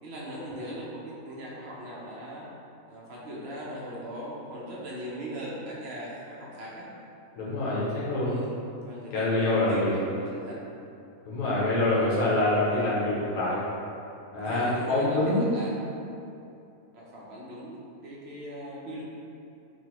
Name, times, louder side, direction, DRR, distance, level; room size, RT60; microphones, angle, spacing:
voice 1, 0.0-2.5 2.9-6.9 8.2-10.6 14.4-15.7 16.9-19.0, equal, 65° right, -5 dB, 0.6 m, -39 dB
voice 2, 7.4-8.3 9.1-10.0 11.2-13.6 14.3-15.4, left 2 dB, 80° left, -7 dB, 1.1 m, -25 dB
3.1 x 2.3 x 2.9 m, 2.7 s
omnidirectional pair, 1.5 m